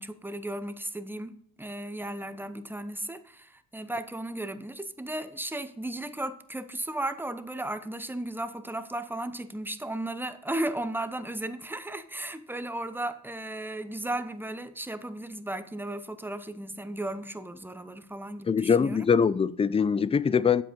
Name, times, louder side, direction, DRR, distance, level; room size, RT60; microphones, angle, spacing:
voice 1, 0.0-1.3 1.6-19.0, right 1 dB, 5° right, 0.9 m, -35 dB
voice 2, 18.5-20.6, left 6 dB, 15° left, 0.3 m, -23 dB
8.8 x 7.7 x 5.2 m
hypercardioid pair, 45°, 48 cm